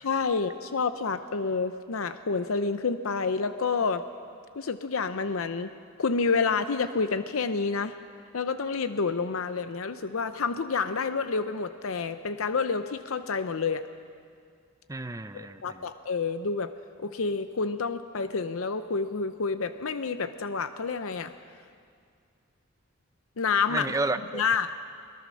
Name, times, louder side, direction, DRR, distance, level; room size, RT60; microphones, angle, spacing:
voice 1, 0.0-4.0 4.6-5.7 6.0-7.9 8.3-13.8 15.3-16.7 17.0-21.3 23.4-23.9 24.3-24.7, left 4 dB, 80° left, 10 dB, 0.7 m, -29 dB
voice 2, 14.9-15.9 23.7-24.4, right 2 dB, 15° right, 11 dB, 0.5 m, -31 dB
21.5 x 21.5 x 6.3 m, 2.2 s
head